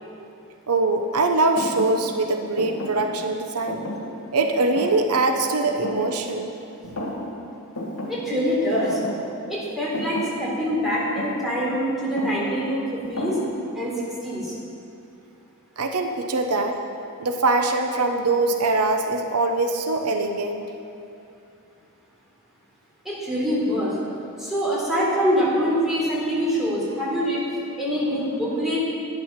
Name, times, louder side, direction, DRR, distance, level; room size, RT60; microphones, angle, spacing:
voice 1, 0.7-3.8 4.3-6.5 6.8-7.0 15.8-16.8 17.2-20.6, right 3 dB, 85° right, 5 dB, 0.9 m, -23 dB
Thump thud, 1.6-6.6 6.8-7.5 7.7-13.9, left 1 dB, 80° left, 1.9 m, -34 dB
voice 2, 8.1-9.0 9.5-13.4 13.7-13.9 14.2-14.5 23.1-23.9 24.4-27.5 27.8-28.8, equal, ahead, -7 dB, 3.6 m, -24 dB
11.5 x 10.5 x 5.9 m, 2.6 s
head